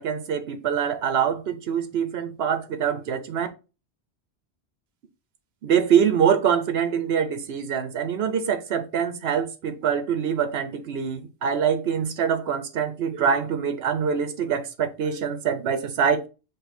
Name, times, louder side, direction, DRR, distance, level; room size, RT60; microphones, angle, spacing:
voice 1, 0.0-3.5 5.6-16.3, right 7 dB, 65° right, 0.9 m, -24 dB
5.2 x 2.3 x 4.1 m
omnidirectional pair, 1.1 m